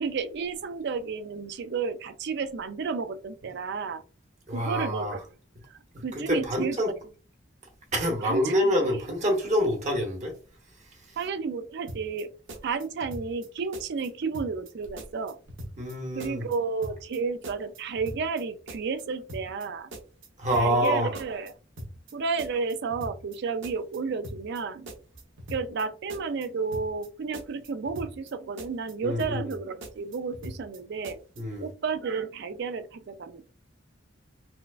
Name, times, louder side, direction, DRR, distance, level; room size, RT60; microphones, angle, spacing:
voice 1, 0.0-4.0 4.5-5.2 5.7-7.0 8.2-9.2 11.2-12.3 12.6-15.4 16.1-19.9 20.5-21.5 22.1-24.9 25.5-31.2 31.6-33.5, right 5 dB, 60° right, 0.4 m, -32 dB
voice 2, 4.5-5.1 6.3-6.9 7.9-10.3 15.8-16.5 20.4-21.1 29.0-29.4 31.4-31.6, equal, 40° right, 1.0 m, -26 dB
sound 1, 11.9-12.2 12.5-13.5 13.7-14.1 14.3-14.7 15.0-16.6 16.8-17.2 17.4-18.4 18.7-19.0 19.3-19.7 19.9-20.9 21.1-21.5 21.8-22.1 22.4-23.4 23.6-24.0 24.2-24.6 24.9-25.8 26.1-26.5 26.7-27.1 27.3-28.3 28.6-28.9 29.2-29.6 29.8-30.8 31.0-31.4, equal, 85° right, 0.9 m, -41 dB
4.4 x 2.2 x 2.4 m
head